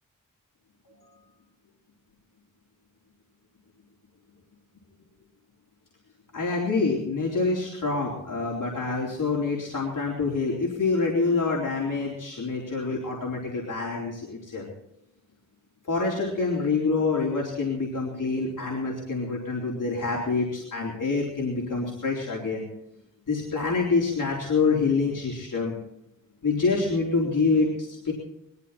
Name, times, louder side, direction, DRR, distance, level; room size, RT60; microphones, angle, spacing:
voice 1, 6.3-14.7 15.9-22.6 23.3-25.8 26.4-28.1, left 4 dB, 75° left, -4 dB, 4.0 m, -26 dB
21.5 x 14.0 x 4.3 m, 0.81 s
wide cardioid pair, 105°, 32 cm